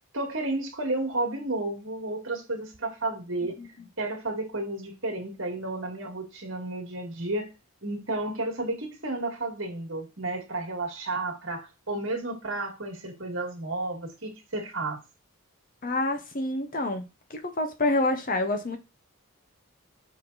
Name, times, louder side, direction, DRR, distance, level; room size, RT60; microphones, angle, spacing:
voice 1, 0.1-3.5 4.0-7.5 7.8-15.0, right 2 dB, 60° right, 2.1 m, -32 dB
voice 2, 15.8-17.0 17.3-18.8, left 2 dB, 40° left, 0.9 m, -27 dB
6.9 x 3.6 x 4.1 m
head